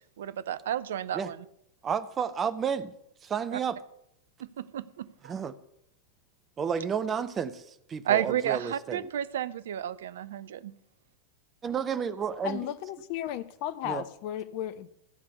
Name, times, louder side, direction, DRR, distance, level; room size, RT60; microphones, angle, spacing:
voice 1, 0.2-1.4 3.5-3.6 4.4-5.3 8.0-10.7, right 11 dB, 60° right, 0.5 m, -31 dB
voice 2, 1.8-2.9 3.2-3.8 5.2-5.5 6.6-7.6 7.9-9.1 11.6-12.6 13.8-14.0, right 7 dB, 20° right, 0.7 m, -31 dB
voice 3, 12.4-14.9, left 12 dB, 45° left, 0.5 m, -35 dB
14.0 x 5.2 x 6.8 m
figure-of-eight pair, 90°, 0 cm